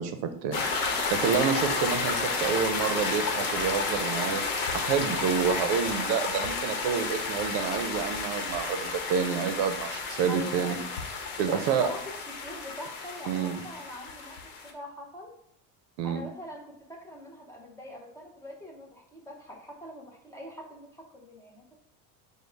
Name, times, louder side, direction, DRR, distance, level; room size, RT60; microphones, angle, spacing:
voice 1, 0.0-4.4 4.7-10.8 11.4-11.9 13.3-13.6 16.0-16.2, right 7 dB, 65° right, 8 dB, 0.7 m, -28 dB
sound 1, 0.5-14.7, left 4 dB, 70° left, 1.0 m, -31 dB
voice 2, 1.2-1.5 10.3-10.9 11.5-15.3 16.0-21.8, left 1 dB, 5° left, -2 dB, 0.7 m, -43 dB
5.2 x 2.2 x 4.5 m, 0.77 s
cardioid pair, 165°, 41 cm